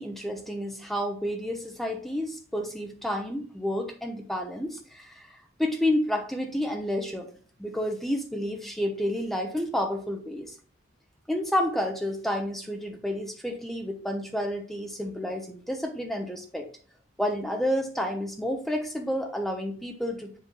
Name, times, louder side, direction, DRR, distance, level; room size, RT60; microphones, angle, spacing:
voice 1, 0.0-5.3 5.6-7.3 7.6-10.5 11.3-16.7 17.2-20.4, left 1 dB, ahead, 3 dB, 0.9 m, -30 dB
7.5 x 4.2 x 3.5 m, 0.44 s
head